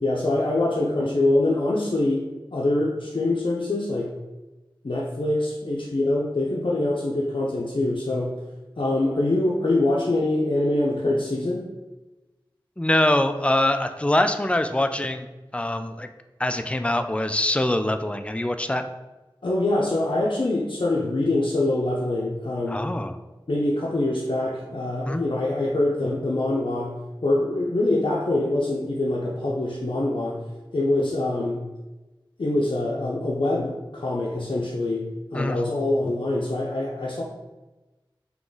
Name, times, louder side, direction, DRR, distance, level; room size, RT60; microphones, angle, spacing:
voice 1, 0.0-4.1 4.8-8.4 8.8-11.6 19.4-22.9 23.5-27.0 27.2-30.4 30.7-31.6 32.4-37.2, left 2 dB, 65° left, -4 dB, 0.5 m, -24 dB
voice 2, 12.8-15.3 15.5-16.1 16.4-18.8 22.7-23.2 25.1-25.2 35.3-35.6, left 1 dB, 15° left, 8 dB, 0.3 m, -23 dB
3.7 x 2.9 x 3.8 m, 1.1 s
wide cardioid pair, 45°, 9 cm